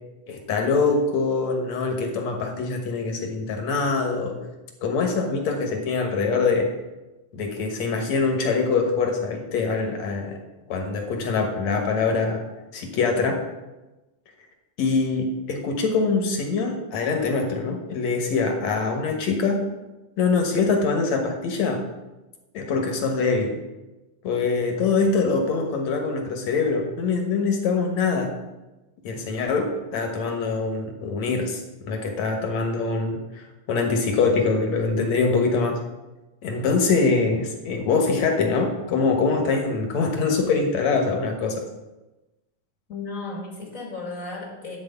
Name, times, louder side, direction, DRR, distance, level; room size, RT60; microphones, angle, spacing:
voice 1, 0.3-4.4 4.8-6.7 7.3-10.4 10.7-12.4 12.7-13.4 14.8-19.6 20.2-21.8 22.5-23.6 24.2-28.3 29.0-35.8 36.4-41.6, left 4 dB, 60° left, 3 dB, 2.2 m, -24 dB
voice 2, 42.9-44.8, left 3 dB, 35° left, 0 dB, 1.4 m, -34 dB
11.5 x 4.7 x 8.1 m, 1.1 s
omnidirectional pair, 3.9 m